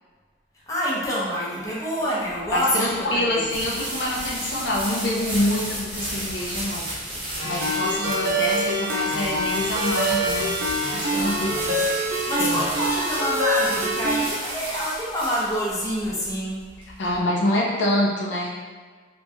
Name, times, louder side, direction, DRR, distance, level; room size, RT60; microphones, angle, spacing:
voice 1, 0.7-3.5 7.6-8.3 11.2-11.9 12.3-16.7, equal, 15° left, -7 dB, 0.7 m, -27 dB
sound 1, 2.3-17.2, right 1 dB, 25° right, 0.8 m, -33 dB
voice 2, 2.5-6.9 7.2-10.6 10.9-11.8 12.4-12.6 17.0-18.5, left 1 dB, 65° left, -3 dB, 0.6 m, -26 dB
Ringtone, 7.4-14.3, right 1 dB, 70° right, 0.7 m, -25 dB
2.9 x 2.6 x 3.5 m, 1.5 s
head